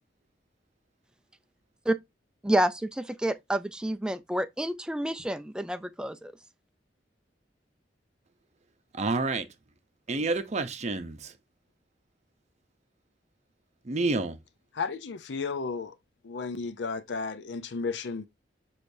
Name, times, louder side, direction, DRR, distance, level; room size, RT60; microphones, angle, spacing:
voice 1, 2.4-6.3, right 1 dB, 5° right, 0.4 m, -29 dB
voice 2, 8.9-9.5 10.1-11.3 13.8-14.4, right 3 dB, 40° right, 0.7 m, -29 dB
voice 3, 14.7-15.9 16.2-18.3, left 4 dB, 70° left, 0.5 m, -33 dB
6.4 x 3.1 x 2.6 m
head